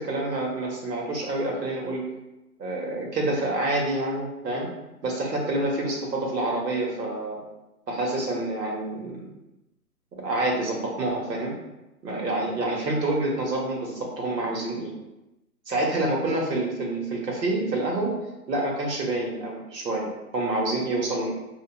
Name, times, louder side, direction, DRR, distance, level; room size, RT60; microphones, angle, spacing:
voice 1, 0.0-2.0 2.6-4.7 5.0-7.4 7.9-9.2 10.2-11.5 12.0-14.9 15.7-18.2 18.5-21.3, right 2 dB, 85° right, -1 dB, 1.1 m, -27 dB
3.0 x 2.3 x 2.2 m, 0.96 s
hypercardioid pair, 170°, 48 cm